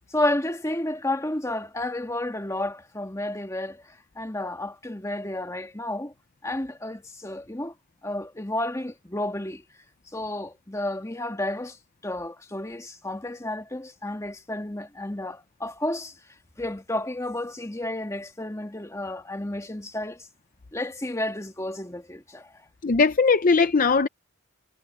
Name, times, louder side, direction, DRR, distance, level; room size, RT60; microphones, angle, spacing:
voice 1, 0.1-6.1 6.4-7.7 8.0-9.6 10.1-11.8 12.0-16.2 16.6-20.3 20.7-22.7, left 1 dB, 15° left, 1.7 m, -31 dB
voice 2, 22.8-24.1, left 4 dB, 40° left, 0.6 m, -19 dB
head